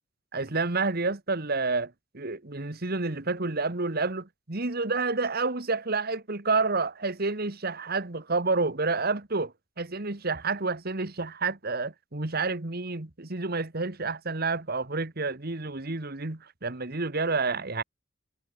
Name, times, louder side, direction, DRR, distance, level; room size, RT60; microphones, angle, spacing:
voice 1, 0.3-17.8, right 3 dB, 50° right, 1.7 m, -29 dB
head